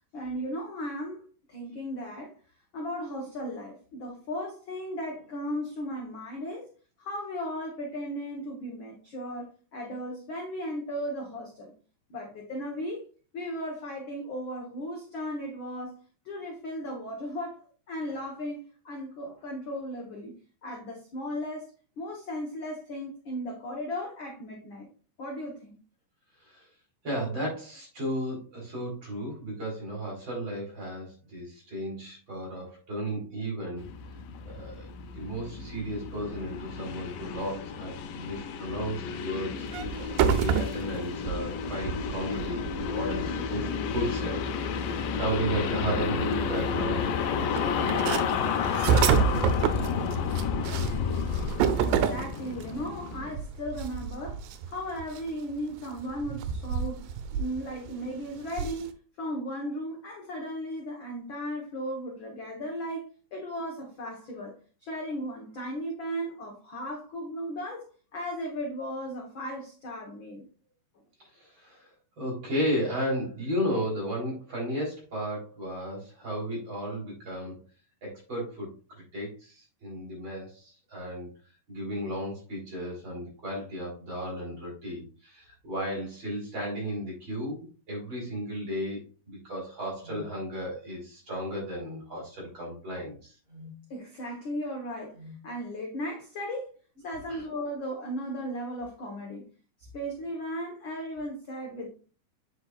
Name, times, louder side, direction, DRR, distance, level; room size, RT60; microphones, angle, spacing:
voice 1, 0.1-1.2 1.5-2.3 2.7-6.7 7.0-11.7 12.1-13.0 13.3-15.9 16.2-17.6 17.9-20.3 20.6-21.7 22.0-24.9 25.2-25.8 51.8-58.9 59.2-64.5 64.8-67.9 68.1-70.4 93.9-95.1 95.4-96.7 97.0-99.4 99.9-101.9, equal, 60° left, 0 dB, 1.3 m, -36 dB
voice 2, 27.0-33.9 34.4-34.9 35.1-39.7 40.2-44.4 44.8-48.5 71.3-71.9 72.2-77.6 78.0-81.3 81.7-93.4 97.3-97.4, equal, 35° right, -3 dB, 4.3 m, -34 dB
sound 1, 33.8-53.4, left 6 dB, 85° left, 2.3 m, -31 dB
sound 2, 39.7-43.9 44.8-44.9 45.1-45.2 45.6-52.8 53.1-58.9, right 7 dB, 85° right, 2.4 m, -29 dB
sound 3, 90.0-90.3 91.7-92.1 93.5-93.8 95.1-95.4, left 3 dB, 15° right, 2.3 m, -46 dB
8.0 x 6.4 x 2.4 m, 0.37 s
omnidirectional pair, 3.9 m